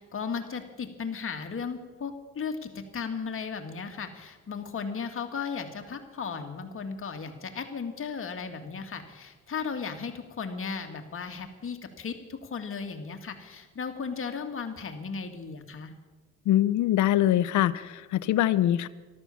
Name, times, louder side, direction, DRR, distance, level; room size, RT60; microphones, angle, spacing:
voice 1, 0.0-15.9, left 5 dB, 45° left, 5 dB, 2.2 m, -36 dB
voice 2, 16.5-18.9, left 13 dB, 75° left, 14 dB, 0.7 m, -23 dB
13.5 x 12.5 x 7.1 m, 1.3 s
cardioid pair, 90°, 30 cm